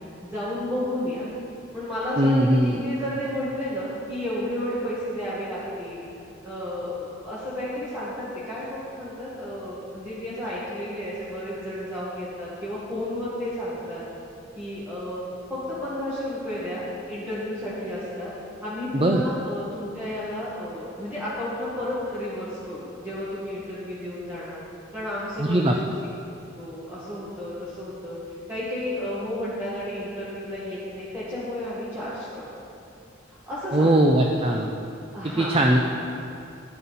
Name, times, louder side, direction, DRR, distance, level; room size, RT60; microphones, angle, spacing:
voice 1, 0.2-1.2 1.7-6.1 6.4-14.0 14.6-18.3 18.6-24.6 24.9-25.9 26.6-28.2 28.5-32.5 33.3-34.0 35.1-35.6, left 1 dB, 10° right, -11 dB, 1.8 m, -32 dB
voice 2, 2.2-2.8 18.9-19.2 25.4-25.7 33.7-34.7 35.4-35.8, right 1 dB, 30° right, 2 dB, 0.5 m, -20 dB
13.5 x 9.7 x 4.1 m, 2.8 s
head